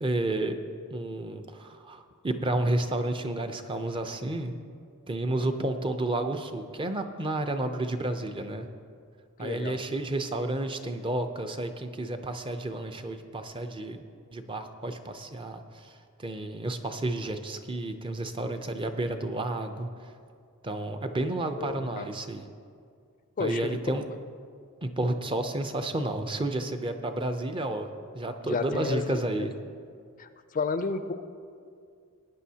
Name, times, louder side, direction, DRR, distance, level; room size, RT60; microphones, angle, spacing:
voice 1, 0.0-0.6 0.9-4.5 5.1-8.7 9.4-14.0 14.3-15.9 16.2-19.9 20.6-22.5 23.4-24.0 24.8-27.9 28.1-29.5, right 2 dB, 25° right, 7 dB, 0.6 m, -31 dB
voice 2, 9.4-9.8 21.6-22.1 23.4-23.8 28.4-29.5 30.2-31.1, left 4 dB, 35° left, 10 dB, 0.4 m, -32 dB
18.0 x 9.5 x 2.8 m, 2.2 s
head